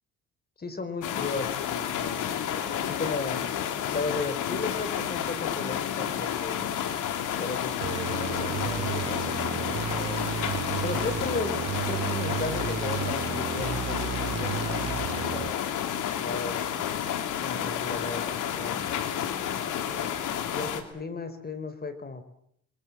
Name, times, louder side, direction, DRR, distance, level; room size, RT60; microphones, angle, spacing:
voice 1, 0.6-2.2 2.5-3.4 3.9-6.9 7.3-10.2 10.8-11.5 11.9-16.7 17.4-22.2, left 3 dB, 30° left, 11 dB, 4.5 m, -36 dB
sound 1, 1.0-20.8, left 9 dB, 85° left, 3.0 m, -31 dB
sound 2, 7.8-15.5, right 8 dB, 60° right, 2.3 m, -33 dB
29.0 x 22.0 x 7.4 m, 0.71 s
cardioid pair, 90°, 30 cm